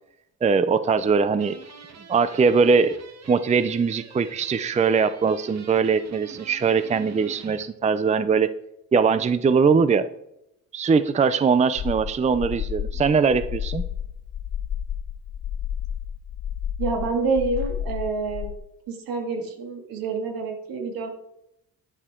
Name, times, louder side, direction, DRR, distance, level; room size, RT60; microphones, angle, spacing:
voice 1, 0.4-1.6 2.1-3.0 3.3-8.5 8.9-10.1 10.7-13.8, right 5 dB, 20° right, 13 dB, 0.5 m, -21 dB
sound 1, 1.3-7.7, right 5 dB, 50° right, 1.4 m, -46 dB
sound 2, 11.8-18.5, left 9 dB, 45° left, 0.6 m, -31 dB
voice 2, 16.8-18.5 18.9-21.1, right 4 dB, 80° right, 3 dB, 2.5 m, -27 dB
11.0 x 10.0 x 3.8 m, 0.80 s
cardioid pair, 105°, 35 cm